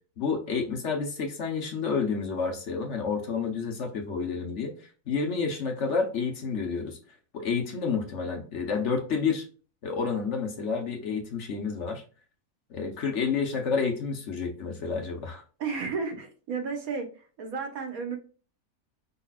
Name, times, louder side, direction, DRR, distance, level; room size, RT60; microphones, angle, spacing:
voice 1, 0.2-7.0 7.3-9.4 9.8-12.0 12.7-15.4, left 5 dB, 55° left, 3 dB, 1.2 m, -29 dB
voice 2, 15.6-18.2, right 5 dB, 75° right, 5 dB, 1.6 m, -33 dB
5.0 x 4.1 x 2.4 m, 0.37 s
omnidirectional pair, 1.6 m